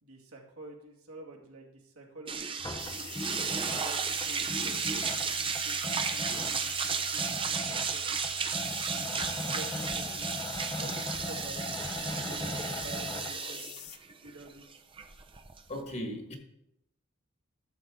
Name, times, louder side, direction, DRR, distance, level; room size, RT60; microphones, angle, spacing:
voice 1, 0.0-3.1 3.6-8.5 8.9-10.3 10.8-14.8, right 2 dB, 70° right, -1 dB, 2.2 m, -49 dB
sound 1, 2.3-15.8, right 6 dB, 25° right, 0.7 m, -34 dB
sound 2, 2.6-13.3, left 1 dB, 15° left, 0.7 m, -40 dB
sound 3, 2.8-14.0, left 11 dB, 80° left, 0.8 m, -46 dB
voice 2, 15.7-16.4, equal, 30° left, 3 dB, 1.6 m, -37 dB
13.0 x 7.0 x 3.8 m, 0.83 s
head